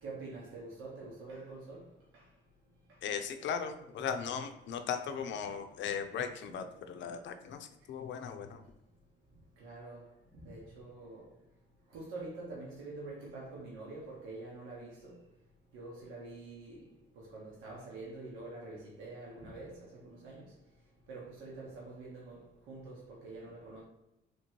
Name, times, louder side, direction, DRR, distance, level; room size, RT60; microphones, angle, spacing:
voice 1, 0.0-1.8 2.1-2.2 9.6-10.1 10.4-11.2 11.9-15.1 15.7-16.9 17.2-20.5 21.1-23.8, right 3 dB, 90° right, 1.1 m, -46 dB
voice 2, 3.0-7.6 7.9-8.6, left 7 dB, 70° left, 0.5 m, -37 dB
3.1 x 3.0 x 4.4 m
cardioid pair, 90°, 20 cm